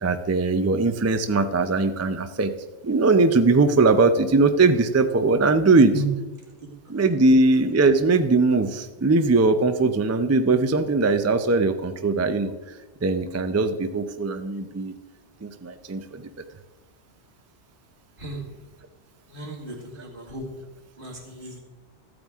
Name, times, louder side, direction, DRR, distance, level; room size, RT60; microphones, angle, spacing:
voice 1, 0.0-2.5 2.8-5.9 6.9-12.5 13.0-14.9 15.4-16.2, right 3 dB, 25° right, 9 dB, 0.3 m, -20 dB
voice 2, 19.3-20.4 21.0-21.6, right 1 dB, 45° right, -1 dB, 2.3 m, -34 dB
14.0 x 8.5 x 3.6 m, 1.2 s
omnidirectional pair, 1.2 m